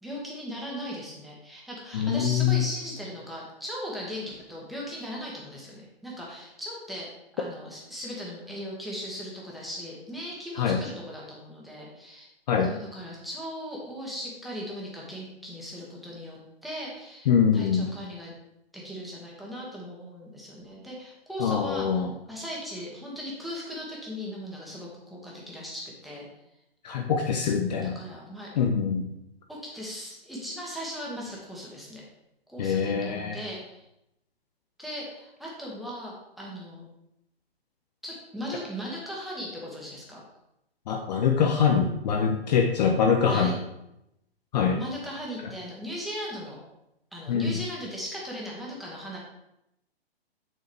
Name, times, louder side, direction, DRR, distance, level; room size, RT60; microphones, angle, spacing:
voice 1, 0.0-7.1 7.3-12.3 12.6-18.3 18.7-26.3 28.0-28.5 29.5-32.0 32.5-33.8 34.8-36.9 38.0-40.2 43.3-43.5 44.8-46.6 47.1-49.2, equal, ahead, -5 dB, 2.0 m, -38 dB
voice 2, 1.9-2.6 10.6-10.8 12.5-12.7 17.3-17.9 21.4-22.1 26.8-28.0 28.6-29.1 32.6-33.4 40.9-43.5 44.5-44.8 47.3-47.6, left 7 dB, 40° left, 3 dB, 0.9 m, -24 dB
7.8 x 7.6 x 3.4 m, 0.85 s
figure-of-eight pair, 125°, 31 cm